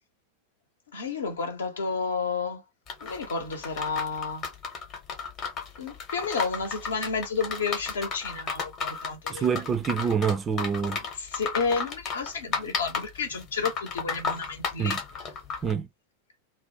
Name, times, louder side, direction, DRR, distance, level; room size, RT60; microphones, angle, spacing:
voice 1, 0.9-2.6 3.0-4.5 5.8-9.4 11.0-15.0, left 5 dB, 65° left, 0.8 m, -31 dB
sound 1, 2.9-15.7, left 5 dB, 35° left, 0.9 m, -34 dB
voice 2, 9.3-11.0 14.8-15.0 15.6-15.9, right 7 dB, 20° right, 0.4 m, -26 dB
2.5 x 2.1 x 2.6 m
figure-of-eight pair, 90°, 0 cm